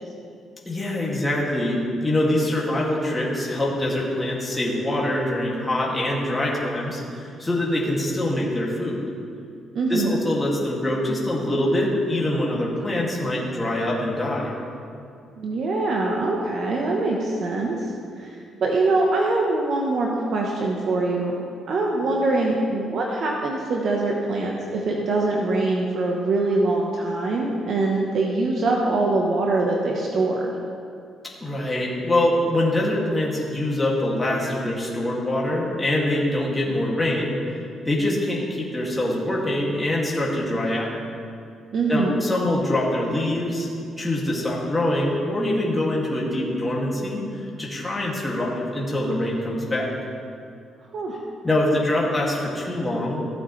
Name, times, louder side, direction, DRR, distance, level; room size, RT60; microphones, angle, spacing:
voice 1, 0.7-9.0 9.9-14.5 31.4-40.9 41.9-43.7 44.0-49.9 51.4-53.3, left 1 dB, 15° left, -5 dB, 2.2 m, -24 dB
voice 2, 9.7-10.2 15.4-17.9 18.2-18.3 18.6-21.3 21.7-30.5 41.7-42.2 50.9-51.2, right 2 dB, 60° right, -1 dB, 1.0 m, -23 dB
15.0 x 7.8 x 3.3 m, 2.4 s
cardioid pair, 90°, 0 cm